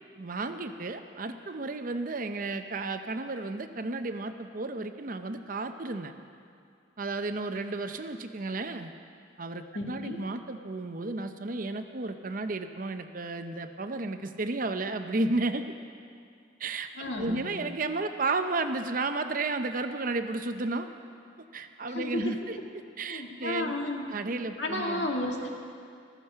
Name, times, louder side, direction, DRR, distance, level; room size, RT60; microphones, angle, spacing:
voice 1, 0.2-6.1 7.0-8.9 9.4-15.7 16.6-20.9 21.5-22.6 23.0-23.7 24.1-25.1, right 3 dB, 45° right, 8 dB, 0.6 m, -33 dB
voice 2, 9.7-10.3 17.0-17.4 21.9-22.2 23.1-24.0 24.6-25.5, left 1 dB, 65° left, 0 dB, 2.1 m, -33 dB
15.0 x 14.0 x 5.6 m, 2.3 s
head